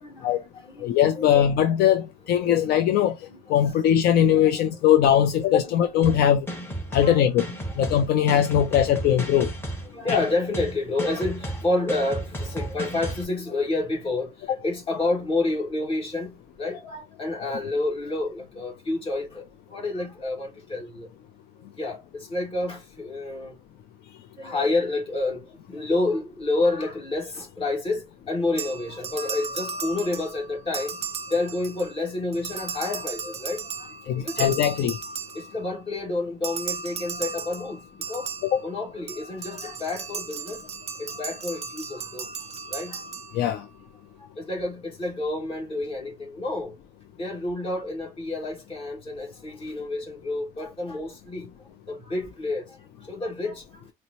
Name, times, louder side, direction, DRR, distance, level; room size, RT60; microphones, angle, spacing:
voice 1, 0.0-0.9 1.2-1.3 2.3-2.8 3.3-3.4 4.2-4.8 5.6-5.7 6.1-6.2 7.0-7.2 7.7-7.8 9.8-19.4 19.7-21.1 21.8-23.5 24.4-31.0 31.3-34.6 35.3-38.3 38.6-40.6 41.0-42.3 42.7-43.0 44.4-46.7 47.2-53.6, left 2 dB, 35° left, 1.7 m, -29 dB
voice 2, 0.8-3.2 3.5-6.5 6.9-7.4 7.8-9.5 10.1-10.2 14.5-14.6 34.1-35.0 38.4-38.6 43.3-43.6, left 10 dB, 70° left, 0.4 m, -20 dB
sound 1, 6.0-13.2, right 1 dB, 15° left, 1.2 m, -33 dB
sound 2, 28.6-32.0 32.3-35.8 36.4-43.7, right 5 dB, 40° right, 0.4 m, -36 dB
4.1 x 2.1 x 2.8 m
cardioid pair, 110°, 17 cm